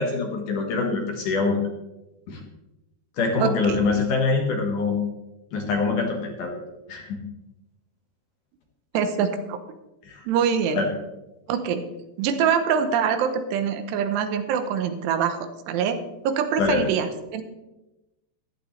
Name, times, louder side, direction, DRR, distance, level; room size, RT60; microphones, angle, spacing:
voice 1, 0.0-1.6 2.3-2.4 3.2-5.0 5.5-6.6 6.9-7.2 10.1-10.2 10.8-10.9 16.6-16.8, left 4 dB, 60° left, 2 dB, 2.6 m, -24 dB
voice 2, 3.4-3.8 8.9-9.6 10.3-10.8 11.5-11.9 12.2-17.4, right 7 dB, 80° right, 9 dB, 3.0 m, -24 dB
14.5 x 12.0 x 3.3 m, 0.97 s
omnidirectional pair, 4.8 m